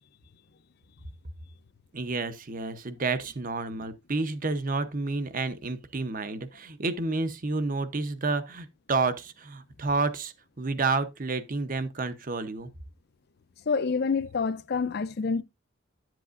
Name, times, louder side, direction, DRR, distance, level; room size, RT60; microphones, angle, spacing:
voice 1, 1.9-12.7, right 3 dB, 40° right, 0.8 m, -30 dB
voice 2, 13.7-15.4, left 5 dB, 50° left, 0.5 m, -27 dB
10.5 x 7.7 x 2.5 m
head